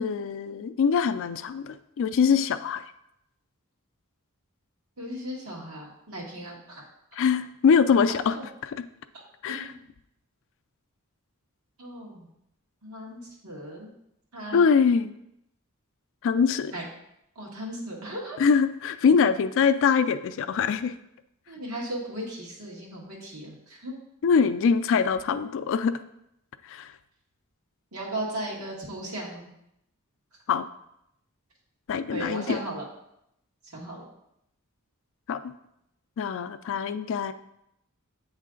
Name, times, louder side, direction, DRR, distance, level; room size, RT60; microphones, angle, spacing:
voice 1, 0.0-2.8 7.2-8.3 8.6-8.7 9.4-9.7 14.5-15.1 16.2-16.7 18.4-20.9 24.2-25.9 26.6-26.9 30.5-30.6 31.9-32.6 35.3-35.5 36.2-37.3, left 6 dB, 60° left, 11 dB, 0.3 m, -23 dB
voice 2, 5.0-6.8 8.3-8.4 9.5-9.8 11.8-12.3 12.8-13.9 14.3-14.6 16.7-16.8 17.3-18.4 21.5-23.9 27.9-29.5 32.1-32.8 33.6-34.0, right 1 dB, 75° right, -2 dB, 1.6 m, -36 dB
8.3 x 3.2 x 3.8 m, 0.80 s
head